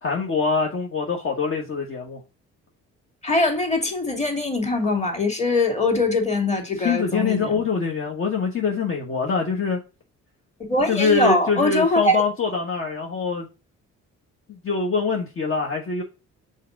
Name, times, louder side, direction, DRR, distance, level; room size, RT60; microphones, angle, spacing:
voice 1, 0.0-2.2 6.7-9.8 10.9-13.5 14.5-16.0, left 5 dB, 45° left, 1.3 m, -24 dB
voice 2, 3.2-7.6 10.6-12.2, left 2 dB, 25° left, 2.4 m, -22 dB
5.7 x 4.4 x 3.8 m
cardioid pair, 90°, 30 cm